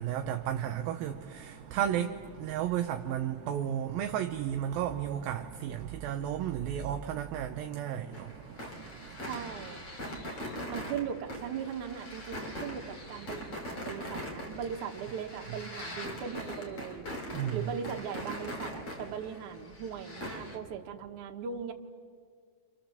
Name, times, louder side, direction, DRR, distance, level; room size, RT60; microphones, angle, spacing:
voice 1, 0.0-9.3 10.1-10.8 15.5-15.6 17.3-17.7, right 10 dB, 75° right, 2.3 m, -34 dB
sound 1, 8.1-20.6, equal, 35° left, 3.5 m, -41 dB
voice 2, 9.3-9.8 10.7-17.1 17.5-21.7, right 7 dB, 60° right, 2.5 m, -39 dB
29.5 x 27.0 x 7.3 m
omnidirectional pair, 4.7 m